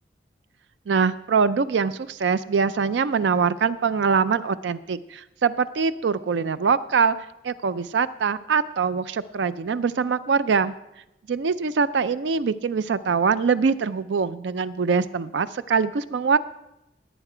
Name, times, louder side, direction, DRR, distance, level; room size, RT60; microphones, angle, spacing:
voice 1, 0.9-7.2 7.4-10.7 11.3-16.4, right 5 dB, 85° right, 15 dB, 0.4 m, -23 dB
17.5 x 9.0 x 4.9 m, 0.90 s
head